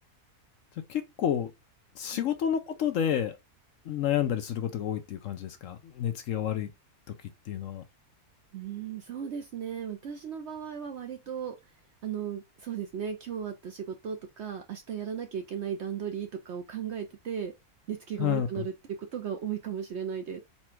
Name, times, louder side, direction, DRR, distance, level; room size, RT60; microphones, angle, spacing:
voice 1, 0.9-1.5 2.0-3.4 3.9-6.7 7.5-7.8 18.2-18.7, left 9 dB, 65° left, 0.9 m, -30 dB
voice 2, 8.5-11.6 12.0-17.5 17.9-18.7 19.0-20.4, right 8 dB, 65° right, 0.7 m, -36 dB
4.2 x 2.3 x 4.3 m
omnidirectional pair, 1.6 m